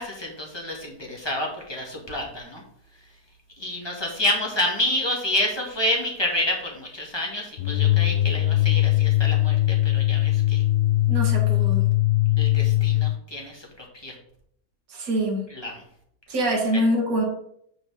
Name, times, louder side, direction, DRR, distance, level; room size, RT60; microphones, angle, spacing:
voice 1, 0.0-2.6 3.6-10.6 12.4-14.2 15.5-15.8, left 1 dB, 15° left, -1 dB, 1.8 m, -29 dB
sound 1, 7.6-13.2, left 16 dB, 70° left, 1.1 m, -21 dB
voice 2, 11.1-11.9 14.9-15.5 16.3-17.2, equal, 55° right, -2 dB, 2.2 m, -24 dB
6.3 x 4.9 x 6.3 m, 0.71 s
omnidirectional pair, 1.8 m